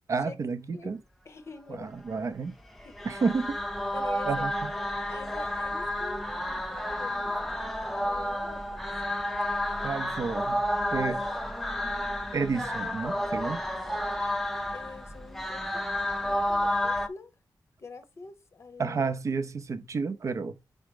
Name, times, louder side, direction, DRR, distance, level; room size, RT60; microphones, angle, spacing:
voice 1, 0.1-1.0 1.8-2.5 3.0-3.6 4.3-4.7 9.8-10.6 10.9-11.2 12.3-13.6 18.8-20.5, right 4 dB, 45° right, 0.6 m, -30 dB
voice 2, 1.2-2.3 2.8-2.9 3.9-4.4 5.1-7.7 8.0-8.9 11.0-11.2 14.7-15.9 16.2-17.3 17.8-19.1, left 4 dB, 40° left, 0.7 m, -45 dB
sound 1, 2.8-17.1, left 1 dB, 5° left, 0.6 m, -31 dB
5.0 x 4.3 x 5.1 m
wide cardioid pair, 170°, 7 cm